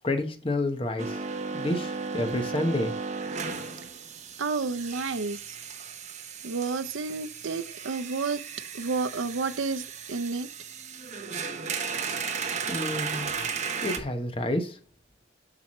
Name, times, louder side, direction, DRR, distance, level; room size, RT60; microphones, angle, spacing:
voice 1, 0.0-1.2 1.5-2.9 12.7-13.5 13.8-14.8, left 1 dB, 25° left, 1.0 m, -29 dB
sound 1, 1.0-14.0, right 5 dB, 35° right, 0.9 m, -35 dB
voice 2, 4.4-5.4 6.4-8.4 8.7-9.8 10.1-10.5, right 4 dB, 75° right, 0.6 m, -30 dB
7.5 x 5.8 x 3.1 m
head